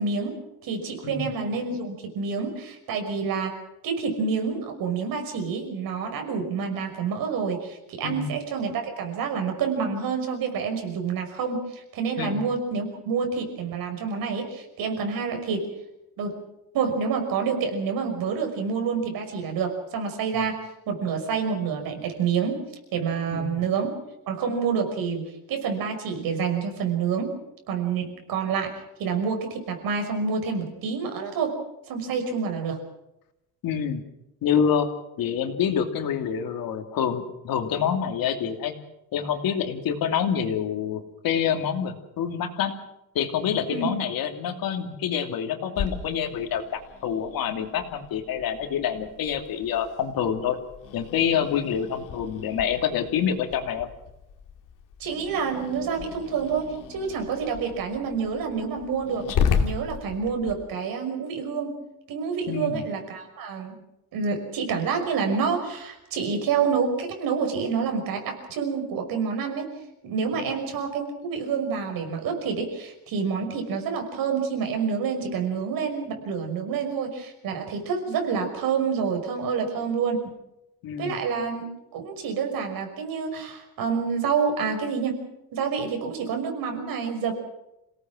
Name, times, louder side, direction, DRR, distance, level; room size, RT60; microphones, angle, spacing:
voice 1, 0.0-3.6 3.8-15.7 16.2-16.4 16.7-20.6 20.9-22.6 22.9-24.0 24.3-27.3 27.7-28.7 29.0-31.6 31.9-32.8 43.7-43.9 55.0-59.3 59.6-61.8 62.1-63.8 64.1-69.7 70.0-80.2 81.0-81.7 81.9-85.2 85.5-87.3, right 5 dB, 75° right, 4 dB, 5.9 m, -28 dB
voice 2, 1.0-1.4 8.0-8.3 12.2-12.4 20.3-20.5 23.3-23.7 33.6-34.0 34.4-34.9 35.2-38.7 39.1-42.8 43.1-50.6 50.9-53.9 62.5-62.8 70.3-70.6 80.8-81.2, left 8 dB, 75° left, 6 dB, 2.8 m, -27 dB
Growling, 45.7-60.5, left 6 dB, 60° left, 2.7 m, -34 dB
28.0 x 18.0 x 6.2 m, 0.89 s
cardioid pair, 180°, 35 cm